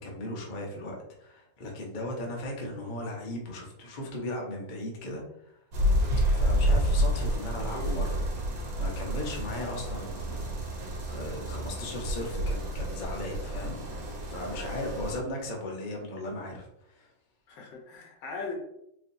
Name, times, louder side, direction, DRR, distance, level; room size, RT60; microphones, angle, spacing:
voice 1, 0.0-5.6 6.3-8.2 8.7-17.1, left 1 dB, 45° left, -1 dB, 0.6 m, -37 dB
sound 1, 5.7-15.2, equal, 80° right, 1.7 m, -29 dB
voice 2, 7.7-8.0 17.5-18.5, left 4 dB, 80° left, 0 dB, 1.7 m, -39 dB
4.6 x 2.8 x 2.6 m, 0.77 s
omnidirectional pair, 2.1 m